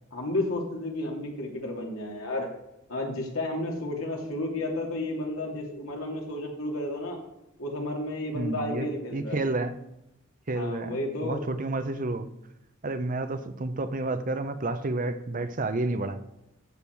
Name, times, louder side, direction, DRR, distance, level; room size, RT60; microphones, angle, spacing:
voice 1, 0.1-2.5 2.9-7.2 7.6-9.4 10.5-11.4, left 1 dB, 85° left, 0 dB, 2.9 m, -32 dB
voice 2, 8.3-9.8 10.5-12.3 12.8-16.2, right 2 dB, 40° right, 10 dB, 0.7 m, -30 dB
14.0 x 7.3 x 4.7 m, 0.87 s
head